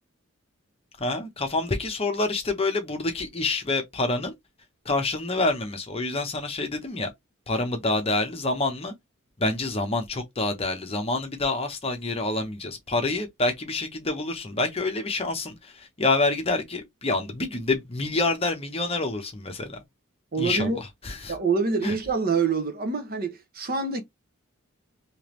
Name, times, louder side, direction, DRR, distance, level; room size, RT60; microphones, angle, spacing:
voice 1, 1.0-4.3 4.8-7.1 7.5-8.9 9.4-19.8 20.4-21.3 21.8-22.0, left 2 dB, 30° left, 0.9 m, -27 dB
voice 2, 20.3-20.8 21.3-24.0, right 4 dB, 45° right, 0.9 m, -26 dB
3.5 x 2.9 x 3.1 m
head